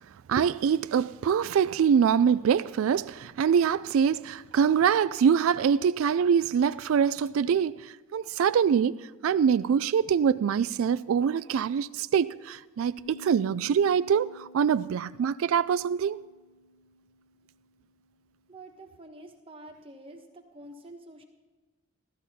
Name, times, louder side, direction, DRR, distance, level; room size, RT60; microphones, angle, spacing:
voice 1, 0.3-8.9 9.2-16.2, right 7 dB, 80° right, 0.3 m, -24 dB
sound 1, 13.0-18.1, left 1 dB, 20° left, 0.9 m, -51 dB
voice 2, 18.5-21.2, right 1 dB, 25° right, 1.2 m, -47 dB
16.0 x 12.5 x 4.2 m
head